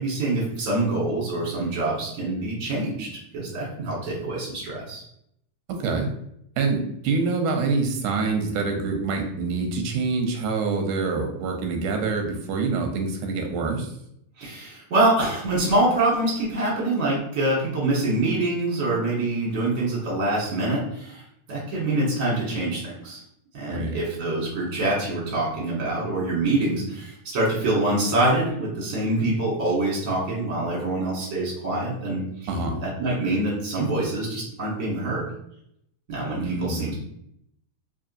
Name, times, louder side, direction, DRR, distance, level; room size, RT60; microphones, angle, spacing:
voice 1, 0.0-5.0 14.4-21.2 21.5-23.2 23.5-32.5 32.8-35.2 36.1-36.9, right 2 dB, 45° right, -5 dB, 1.0 m, -25 dB
voice 2, 6.6-13.9 23.7-24.0 32.5-32.8 36.4-36.9, right 4 dB, 85° right, 3 dB, 2.1 m, -26 dB
4.7 x 2.8 x 2.6 m, 0.74 s
omnidirectional pair, 3.5 m